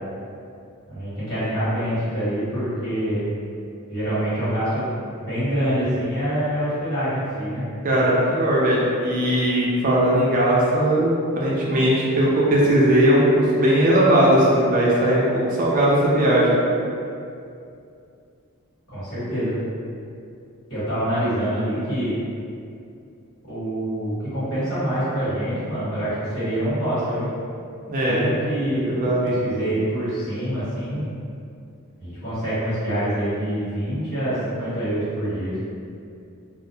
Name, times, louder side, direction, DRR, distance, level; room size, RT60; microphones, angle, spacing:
voice 1, 0.9-3.3 3.9-4.9 5.2-7.6 18.9-19.6 20.7-22.2 23.5-27.3 28.1-31.1 32.0-35.5, equal, 60° left, -13 dB, 1.5 m, -25 dB
voice 2, 7.8-16.6 27.9-28.2 28.9-29.2, right 1 dB, 40° right, -5 dB, 0.4 m, -19 dB
2.4 x 2.1 x 2.6 m, 2.5 s
head